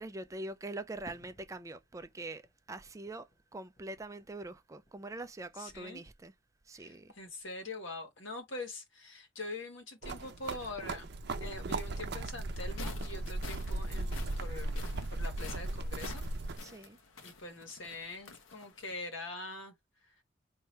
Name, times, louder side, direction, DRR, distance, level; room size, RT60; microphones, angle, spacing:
voice 1, 0.0-6.3 6.6-7.1 16.6-17.0, right 2 dB, 15° right, 0.4 m, -44 dB
Fireworks, 1.0-5.4 5.7-6.5, equal, 35° left, 1.4 m, -61 dB
voice 2, 5.6-6.0 6.7-11.1 11.4-14.8 15.1-16.2 16.6-16.8 17.2-19.7 20.0-20.1, left 2 dB, 70° left, 1.5 m, -44 dB
sound 1, 10.0-16.6, right 2 dB, 55° right, 0.6 m, -37 dB
sound 2, 12.5-18.9, left 4 dB, 90° left, 1.0 m, -50 dB
4.6 x 2.7 x 3.2 m
head